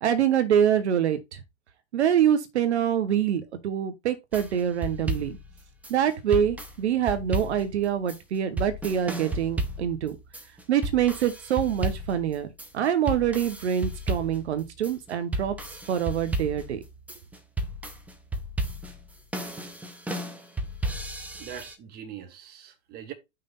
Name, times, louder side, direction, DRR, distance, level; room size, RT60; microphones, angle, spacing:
voice 1, 0.0-1.4 1.9-5.4 5.9-10.2 10.7-12.5 12.7-15.5 15.9-16.8, right 9 dB, 60° right, 1.1 m, -25 dB
sound 1, 4.3-21.8, right 1 dB, 5° right, 0.8 m, -33 dB
voice 2, 21.4-23.1, right 9 dB, 25° right, 1.4 m, -42 dB
5.8 x 3.4 x 5.3 m
hypercardioid pair, 115°, 37 cm